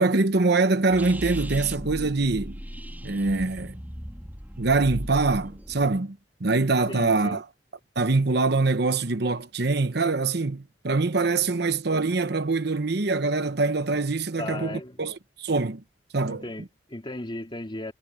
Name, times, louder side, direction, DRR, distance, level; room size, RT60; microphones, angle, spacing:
voice 1, 0.0-2.6 3.0-3.7 4.6-7.4 8.0-15.8 16.1-16.7, right 3 dB, 65° right, 1.0 m, -24 dB
sound 1, 0.9-6.0, equal, 10° right, 4.0 m, -37 dB
voice 2, 6.9-7.4 14.4-15.1 16.3-17.9, left 1 dB, 25° left, 3.0 m, -36 dB
head